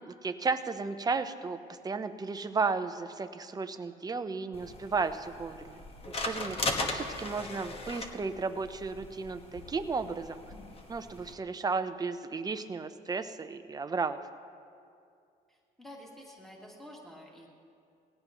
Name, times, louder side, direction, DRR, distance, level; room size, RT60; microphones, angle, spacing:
voice 1, 0.0-1.6 1.8-5.8 6.2-10.4 10.9-14.2, right 4 dB, 20° right, 9 dB, 0.7 m, -34 dB
sound 1, 4.5-11.3, left 2 dB, 35° left, 1.4 m, -38 dB
voice 2, 15.5-17.5, equal, ahead, -3 dB, 2.3 m, -49 dB
20.0 x 16.5 x 3.0 m, 2.4 s
cardioid pair, 110°, 17 cm